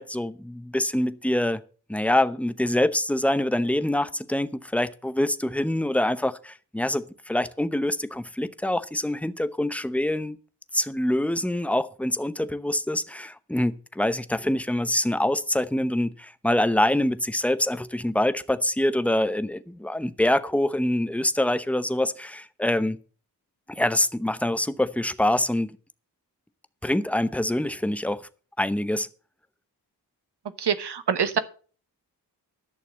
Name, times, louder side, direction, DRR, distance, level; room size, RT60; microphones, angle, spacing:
voice 1, 0.0-1.6 1.9-10.4 10.7-23.0 23.7-25.7 26.8-28.2 28.6-29.1, left 1 dB, 5° left, 0.8 m, -25 dB
voice 2, 30.6-31.4, right 7 dB, 80° right, 1.2 m, -25 dB
11.5 x 6.5 x 7.4 m
wide cardioid pair, 70°, 40 cm